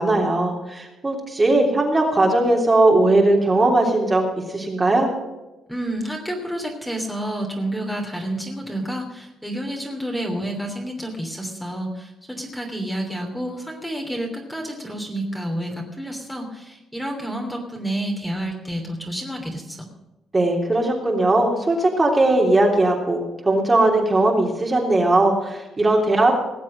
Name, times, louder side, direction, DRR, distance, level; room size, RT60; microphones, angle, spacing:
voice 1, 0.0-5.1 20.3-26.3, right 2 dB, 25° right, 0 dB, 3.3 m, -19 dB
voice 2, 5.7-19.9, right 1 dB, 5° left, 1 dB, 3.1 m, -29 dB
19.0 x 7.4 x 6.4 m, 1.0 s
cardioid pair, 90°, 0 cm